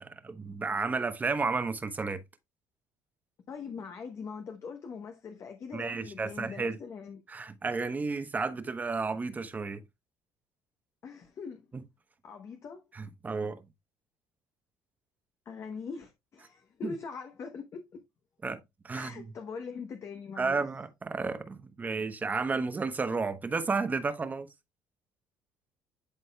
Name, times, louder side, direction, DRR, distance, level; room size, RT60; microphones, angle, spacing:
voice 1, 0.0-2.2 5.7-6.8 7.3-9.8 11.7-11.8 12.9-13.6 16.8-16.9 18.4-19.3 20.4-24.5, right 4 dB, 25° right, 1.0 m, -32 dB
voice 2, 3.5-7.2 11.0-11.7 12.2-12.8 15.5-18.0 18.9-20.7, left 5 dB, 45° left, 0.9 m, -42 dB
11.5 x 4.0 x 2.3 m
cardioid pair, 110°, 7 cm